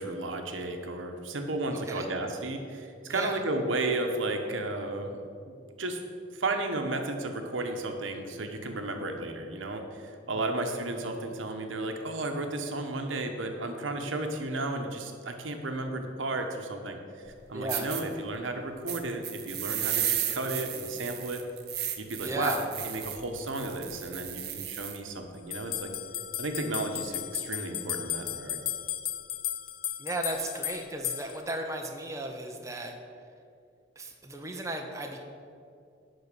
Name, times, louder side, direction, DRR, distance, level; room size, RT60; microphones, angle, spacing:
voice 1, 0.0-5.2 5.5-6.0 6.3-17.0 17.3-21.4 22.0-22.6 22.8-25.9 26.4-28.6, right 2 dB, 85° right, 5 dB, 0.9 m, -33 dB
voice 2, 3.1-3.4 10.3-10.6 17.5-17.9 22.2-22.6 30.0-32.9 34.0-35.2, right 1 dB, 15° right, 2 dB, 0.6 m, -35 dB
sound 1, 17.3-17.4 17.7-18.0 18.9-25.0, right 11 dB, 55° right, 0.8 m, -34 dB
sound 2, 25.5-31.6, left 12 dB, 50° left, 0.4 m, -35 dB
10.5 x 4.0 x 6.7 m, 2.4 s
head